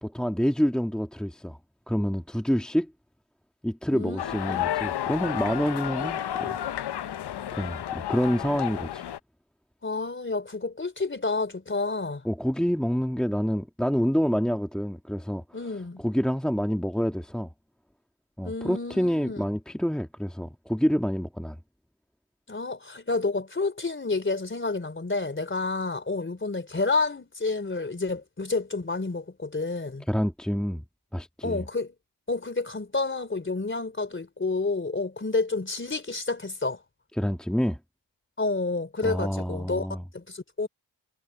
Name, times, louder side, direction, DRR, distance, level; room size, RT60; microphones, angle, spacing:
voice 1, 0.0-1.6 1.9-2.9 3.6-6.6 7.5-9.0 12.2-15.4 16.0-17.5 18.4-21.6 30.1-30.8 31.1-31.6 37.2-37.8 39.0-40.0, equal, ahead, 1.6 m, -27 dB
voice 2, 3.9-4.7 9.8-12.2 15.5-16.0 18.4-19.4 22.5-30.1 31.4-31.9 32.3-36.8 38.4-40.7, left 3 dB, 25° left, 3.5 m, -29 dB
sound 1, 4.2-9.2, left 11 dB, 60° left, 0.8 m, -31 dB
cardioid pair, 85°, 46 cm